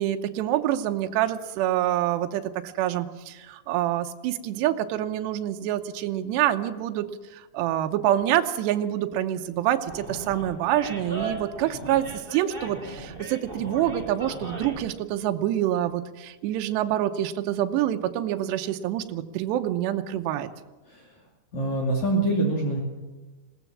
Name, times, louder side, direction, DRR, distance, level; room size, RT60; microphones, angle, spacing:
voice 1, 0.0-7.1 7.3-20.5, right 12 dB, 80° right, 6 dB, 3.0 m, -26 dB
Animal, 9.9-14.9, right 2 dB, 15° right, 2.6 m, -37 dB
voice 2, 21.5-22.8, right 2 dB, 45° left, -1 dB, 3.6 m, -25 dB
20.5 x 17.5 x 7.2 m, 1.2 s
omnidirectional pair, 4.9 m